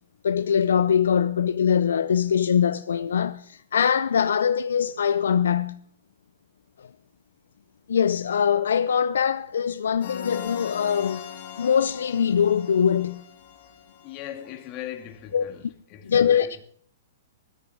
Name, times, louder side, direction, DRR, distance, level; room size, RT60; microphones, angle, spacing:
voice 1, 0.2-5.8 7.9-11.2 11.6-13.2 15.3-15.5 16.1-16.5, left 8 dB, 75° left, 0.5 m, -22 dB
sound 1, 10.0-14.7, left 8 dB, 55° left, 3.5 m, -40 dB
voice 2, 14.0-16.6, left 11 dB, 40° left, 1.9 m, -39 dB
15.5 x 13.0 x 3.5 m
hypercardioid pair, 120°, 0 cm